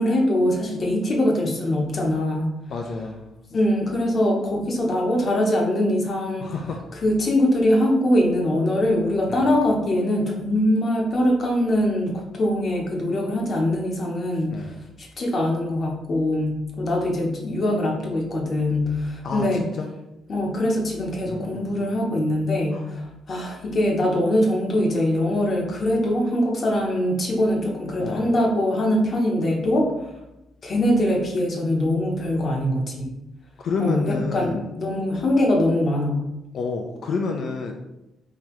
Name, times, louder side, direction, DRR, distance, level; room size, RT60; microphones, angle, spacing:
voice 1, 0.0-2.5 3.5-6.5 7.0-14.7 15.0-19.7 20.3-29.9 30.6-33.1 33.8-36.2, left 1 dB, 45° left, 0 dB, 0.8 m, -22 dB
voice 2, 2.7-3.3 6.4-6.8 9.3-9.5 14.5-14.8 19.2-19.5 19.8-19.9 21.2-22.3 22.7-22.9 28.0-28.3 33.6-34.7 36.5-37.7, left 4 dB, 65° left, 3 dB, 0.4 m, -30 dB
3.8 x 2.8 x 3.0 m, 0.93 s
cardioid pair, 90°, 0 cm